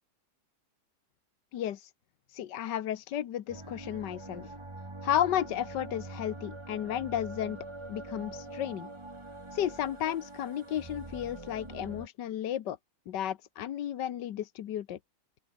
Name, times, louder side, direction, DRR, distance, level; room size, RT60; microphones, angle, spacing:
voice 1, 1.5-1.9 2.3-4.5 5.0-7.6 7.9-8.9 9.5-12.8 13.1-15.0, left 10 dB, 85° left, 1.6 m, -33 dB
sound 1, 3.5-12.1, right 2 dB, 15° right, 2.0 m, -44 dB
open air
omnidirectional pair, 1.8 m